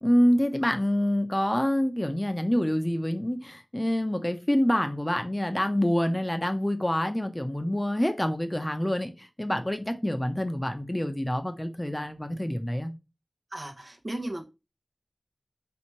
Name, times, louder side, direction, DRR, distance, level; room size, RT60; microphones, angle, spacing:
voice 1, 0.0-12.9, equal, 20° left, 0.6 m, -26 dB
voice 2, 13.5-14.4, right 1 dB, 55° right, 0.9 m, -35 dB
3.5 x 2.9 x 4.4 m
wide cardioid pair, 40°, 0 cm